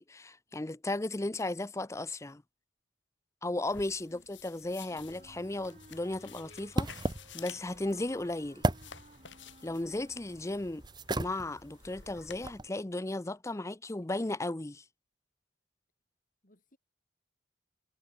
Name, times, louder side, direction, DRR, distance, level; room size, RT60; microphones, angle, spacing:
voice 1, 0.0-2.4 3.4-7.0 7.3-8.6 9.6-10.8 11.2-14.8, left 2 dB, 15° left, 0.6 m, -35 dB
sound 1, 3.7-12.5, left 7 dB, 70° left, 2.9 m, -53 dB
voice 2, 3.8-4.3 16.4-16.8, left 1 dB, 45° left, 4.4 m, -63 dB
Wind instrument woodwind instrument, 4.8-10.7, right 2 dB, 40° right, 7.0 m, -58 dB
sound 2, 5.0-12.7, right 1 dB, 25° right, 1.2 m, -38 dB
head